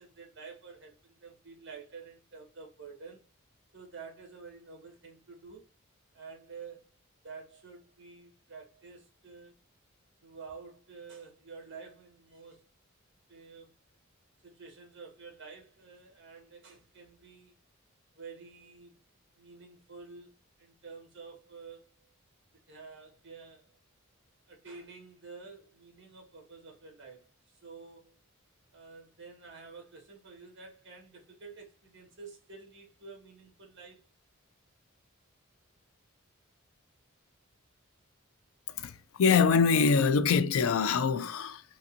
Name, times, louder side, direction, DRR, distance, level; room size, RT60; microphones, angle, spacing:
voice 1, 0.0-3.2 3.7-5.7 6.1-6.9 7.2-9.5 10.2-12.7 13.3-13.7 14.4-17.5 18.1-19.0 19.4-21.9 22.7-23.8 24.5-28.2 28.7-34.0, right 4 dB, 60° right, 1.6 m, -49 dB
voice 2, 38.8-41.6, left 5 dB, 80° left, 0.4 m, -24 dB
3.8 x 2.5 x 2.7 m
head